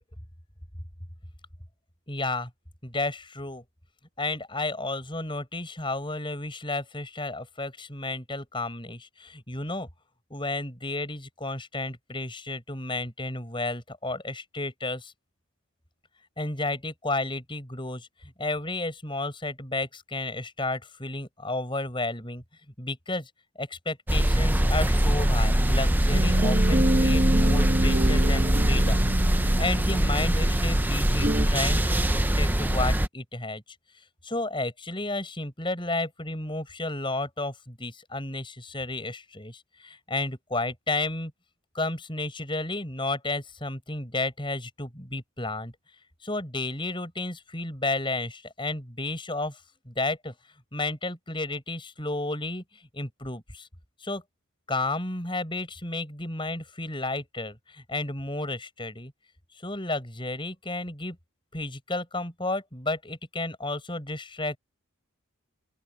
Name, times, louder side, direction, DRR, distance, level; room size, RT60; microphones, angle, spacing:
voice 1, 2.1-2.5 2.8-3.6 4.2-9.9 10.3-15.1 16.4-18.1 18.4-22.4 22.8-23.3 23.6-29.0 29.3-33.6 34.2-41.3 41.7-45.7 46.2-49.6 49.9-50.3 50.7-53.7 54.0-54.2 54.7-59.1 59.6-61.2 61.5-64.6, left 2 dB, 20° left, 7.8 m, -32 dB
sound 1, 24.1-33.1, right 1 dB, 10° right, 0.6 m, -22 dB
sound 2, 25.5-31.5, right 1 dB, 35° right, 1.4 m, -28 dB
open air
head